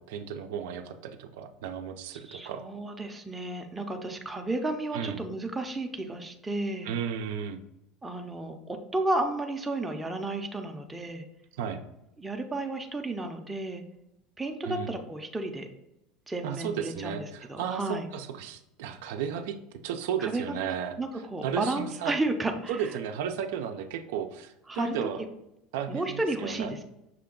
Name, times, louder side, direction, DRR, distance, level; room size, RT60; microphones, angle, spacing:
voice 1, 0.0-2.6 4.9-5.2 6.8-7.6 11.6-11.8 14.6-14.9 16.4-21.0 21.4-22.1 22.7-25.2 25.7-26.7, right 8 dB, 85° right, 7 dB, 0.4 m, -34 dB
voice 2, 2.3-6.9 8.0-11.2 12.2-13.8 14.4-15.7 16.3-18.1 20.2-22.8 24.7-24.9 25.9-26.8, right 2 dB, 10° right, 3 dB, 0.5 m, -32 dB
5.8 x 2.3 x 3.7 m, 0.88 s
supercardioid pair, 135°, 0 cm